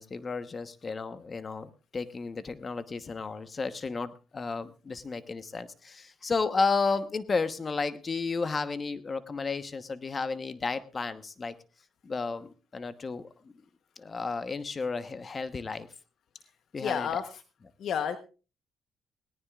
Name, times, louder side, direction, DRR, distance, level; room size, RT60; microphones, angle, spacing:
voice 1, 0.0-11.6 12.0-13.5 14.0-15.9 16.7-17.1, left 4 dB, 35° left, 12 dB, 1.1 m, -33 dB
voice 2, 16.8-17.4 17.8-18.2, left 7 dB, 70° left, 9 dB, 1.0 m, -31 dB
19.5 x 18.0 x 2.4 m, 0.34 s
cardioid pair, 90°, 0 cm